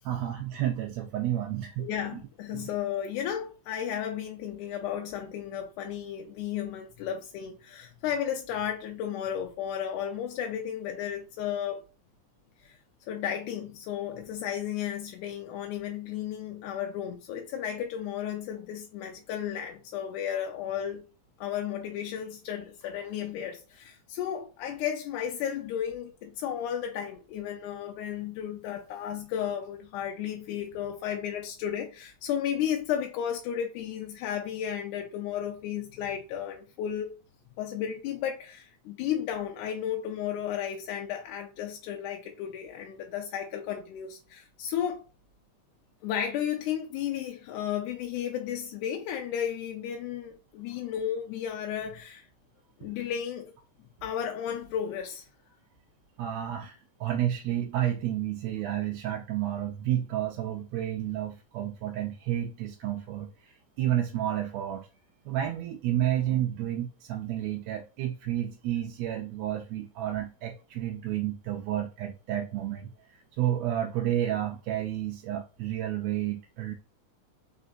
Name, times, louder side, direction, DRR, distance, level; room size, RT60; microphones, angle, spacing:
voice 1, 0.0-1.9 2.5-2.7 56.2-64.9 65.3-72.9 73.4-76.7, right 12 dB, 85° right, 1.5 m, -31 dB
voice 2, 1.8-11.9 12.6-12.8 13.1-21.1 21.4-37.2 37.6-45.0 46.0-52.3 52.8-53.5 54.0-55.2, left 9 dB, 85° left, 2.1 m, -33 dB
4.4 x 3.9 x 2.5 m
omnidirectional pair, 3.5 m